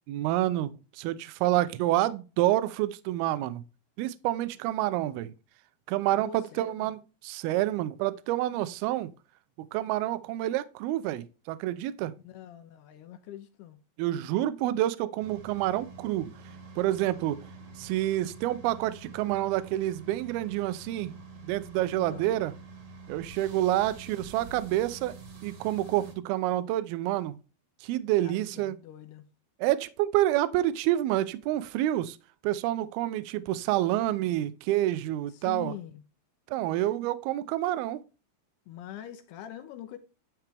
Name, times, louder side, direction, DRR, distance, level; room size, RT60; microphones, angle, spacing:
voice 1, 0.1-3.6 4.0-5.3 5.9-7.0 7.2-9.1 9.7-12.2 14.0-16.3 16.8-17.4 17.8-21.1 21.5-22.5 23.1-25.1 25.4-27.4 27.8-28.8 29.6-32.2 32.4-35.7 36.5-38.0, right 14 dB, 85° right, 2.2 m, -28 dB
voice 2, 6.2-6.9 12.2-13.8 22.0-22.3 28.2-29.2 35.3-36.0 38.7-40.0, left 11 dB, 75° left, 2.7 m, -44 dB
sound 1, 15.2-26.1, right 4 dB, 50° right, 1.8 m, -47 dB
12.0 x 4.5 x 3.4 m
omnidirectional pair, 5.2 m